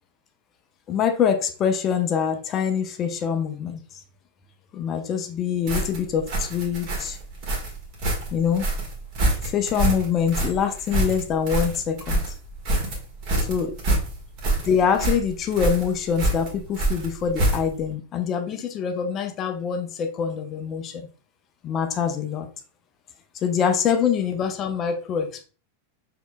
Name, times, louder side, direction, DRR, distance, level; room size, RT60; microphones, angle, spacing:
voice 1, 0.9-3.8 4.7-7.2 8.3-8.7 9.5-12.2 13.5-13.7 14.7-21.0 21.6-22.5 23.4-25.5, left 7 dB, 30° left, 6 dB, 0.6 m, -24 dB
sound 1, 5.7-17.9, right 1 dB, 45° right, 1.6 m, -26 dB
6.2 x 3.8 x 2.2 m, 0.36 s
figure-of-eight pair, 90°, 0 cm